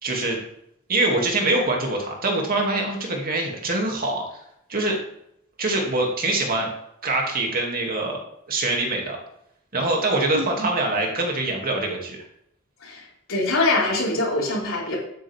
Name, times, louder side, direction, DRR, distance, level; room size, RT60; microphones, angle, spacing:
voice 1, 0.0-0.4 0.9-4.2 4.7-5.0 5.6-6.7 7.0-8.2 8.5-9.2 9.7-12.2, right 2 dB, 45° right, 0 dB, 2.8 m, -24 dB
voice 2, 10.3-10.7 12.8-15.0, left 2 dB, 70° left, -4 dB, 5.0 m, -24 dB
12.5 x 9.9 x 3.7 m, 0.75 s
head